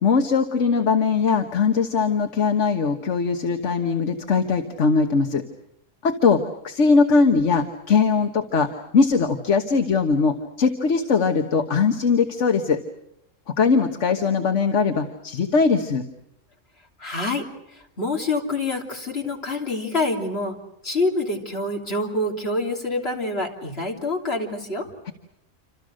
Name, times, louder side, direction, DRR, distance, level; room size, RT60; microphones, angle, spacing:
voice 1, 0.0-5.4 6.0-12.8 13.5-16.0 25.1-25.2, left 5 dB, 70° left, 5 dB, 1.6 m, -20 dB
voice 2, 17.0-17.5 18.0-20.6 20.8-24.9, left 2 dB, 50° left, 1 dB, 3.5 m, -26 dB
28.0 x 26.5 x 6.5 m, 0.80 s
omnidirectional pair, 1.3 m